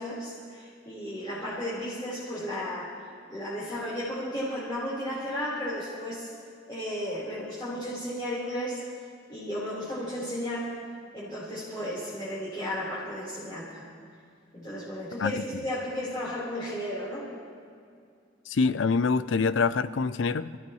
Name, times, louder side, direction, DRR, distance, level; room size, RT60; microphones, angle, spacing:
voice 1, 0.0-2.9 3.3-6.3 6.7-8.8 9.3-10.7 11.1-13.9 14.5-17.3, equal, 25° left, -11 dB, 4.2 m, -34 dB
voice 2, 18.5-20.6, left 4 dB, 85° left, 14 dB, 0.5 m, -25 dB
28.0 x 15.0 x 3.2 m, 2.3 s
head